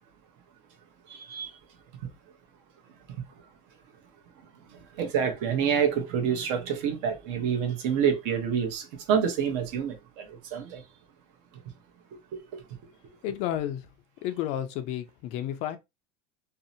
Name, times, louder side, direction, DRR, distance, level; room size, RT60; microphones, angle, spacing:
voice 1, 5.0-10.2 10.5-10.8, right 7 dB, 60° right, 0.7 m, -27 dB
voice 2, 13.2-13.9 14.2-15.8, left 11 dB, 50° left, 0.4 m, -31 dB
2.6 x 2.0 x 2.6 m
cardioid pair, 170°, 14 cm